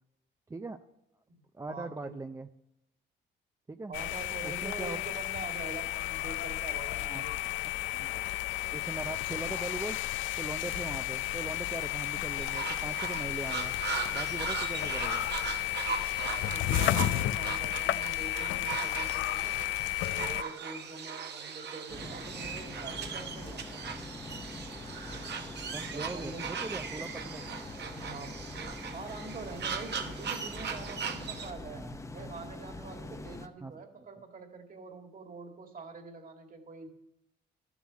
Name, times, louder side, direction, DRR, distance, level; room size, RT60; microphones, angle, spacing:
voice 1, 0.5-0.8 1.5-2.5 3.7-3.9 4.4-5.1 7.1-7.2 7.6-8.1 8.7-10.0 10.4-13.8 14.1-15.3 25.7-27.4 31.7-32.0 33.6-33.7, right 3 dB, 15° right, 8 dB, 0.5 m, -40 dB
voice 2, 1.7-2.2 3.9-7.5 16.3-19.6 20.1-23.8 25.9-26.5 27.9-28.4 28.9-36.9, right 3 dB, 45° right, 5 dB, 2.1 m, -45 dB
sound 1, 3.9-20.4, left 15 dB, 75° left, 0.5 m, -33 dB
sound 2, 12.4-31.5, right 6 dB, 60° right, 1.2 m, -39 dB
sound 3, 21.9-33.5, left 2 dB, 15° left, 0.8 m, -44 dB
12.0 x 7.2 x 7.4 m, 0.83 s
cardioid pair, 90°, 20 cm